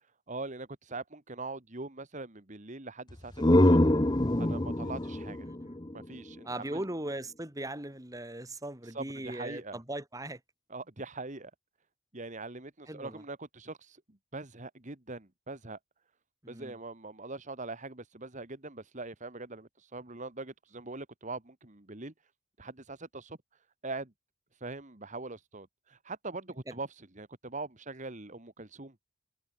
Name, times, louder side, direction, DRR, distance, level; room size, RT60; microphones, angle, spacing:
voice 1, 0.3-3.8 4.4-5.5 5.9-6.8 8.8-9.8 10.7-11.5 12.1-15.8 16.5-22.1 22.6-24.1 24.5-28.9, right 3 dB, 35° right, 1.7 m, -42 dB
sound 1, 3.1-6.8, left 1 dB, 20° left, 0.9 m, -26 dB
voice 2, 5.5-5.8 6.4-10.4 12.9-13.2 16.4-16.8, right 1 dB, 15° right, 2.2 m, -39 dB
head